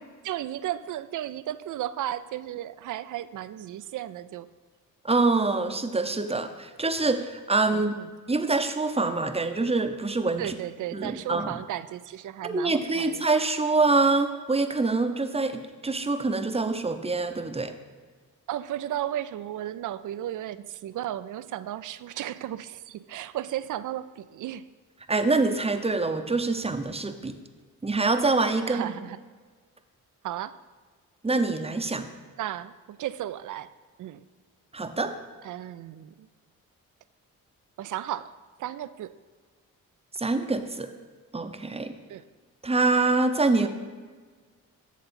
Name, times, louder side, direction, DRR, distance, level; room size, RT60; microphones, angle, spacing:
voice 1, 0.2-4.5 7.7-8.1 10.4-13.3 18.5-24.6 28.7-29.2 30.2-30.5 32.4-33.7 34.0-34.2 35.4-36.3 37.8-38.3 38.6-39.1 42.1-42.2, right 12 dB, 55° right, 15 dB, 0.4 m, -34 dB
voice 2, 5.0-7.9 8.3-10.5 10.9-11.5 12.4-17.7 25.1-27.4 27.8-28.9 31.2-32.1 34.7-35.1 40.2-40.9 41.3-41.9 42.6-43.7, right 3 dB, 15° right, 8 dB, 0.7 m, -25 dB
7.3 x 6.7 x 4.3 m, 1.5 s
supercardioid pair, 55°, 37 cm